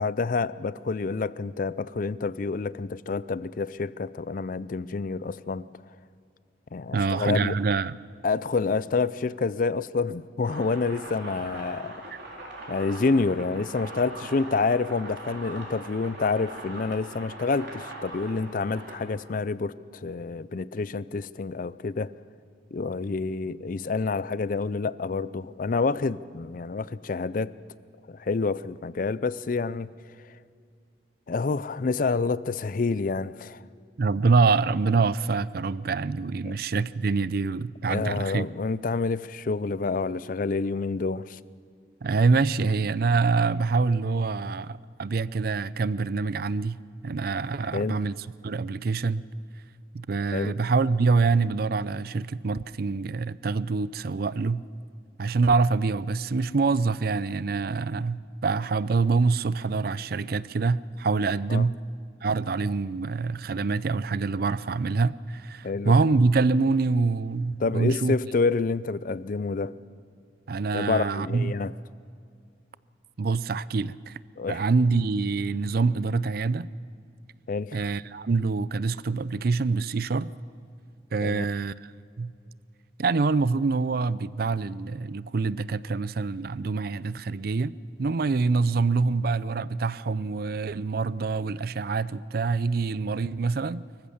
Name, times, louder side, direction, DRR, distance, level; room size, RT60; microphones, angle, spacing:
voice 1, 0.0-5.6 6.7-7.6 8.2-11.9 12.7-22.1 22.7-27.5 28.1-29.9 31.3-33.6 36.4-36.5 37.9-41.4 47.7-48.0 50.3-50.5 61.5-61.7 65.6-65.9 67.6-69.8 70.7-71.7 74.4-74.6 77.5-77.9 81.2-81.5, left 4 dB, 45° left, 0.4 m, -28 dB
voice 2, 6.9-8.0 12.1-12.2 34.0-38.5 42.0-46.8 47.0-49.3 49.9-54.6 55.2-61.8 62.2-68.2 70.5-71.5 73.2-74.2 74.5-76.7 77.7-80.3 81.1-81.9 82.2-82.3 83.0-93.8, right 4 dB, 55° right, 0.4 m, -25 dB
sound 1, 10.4-19.0, right 2 dB, 70° right, 4.3 m, -41 dB
24.5 x 15.0 x 7.2 m
head